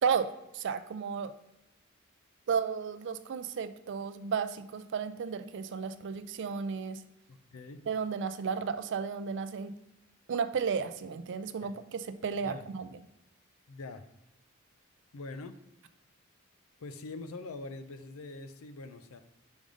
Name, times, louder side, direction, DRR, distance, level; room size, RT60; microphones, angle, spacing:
voice 1, 0.5-1.3 2.5-7.0 7.9-9.7 10.3-12.9, right 6 dB, 55° right, 12 dB, 0.4 m, -33 dB
voice 2, 7.3-7.8 11.6-11.7 12.4-12.6 13.7-14.1 15.1-15.6 16.8-19.2, left 3 dB, 75° left, 10 dB, 0.5 m, -43 dB
5.2 x 5.0 x 3.8 m, 0.91 s
head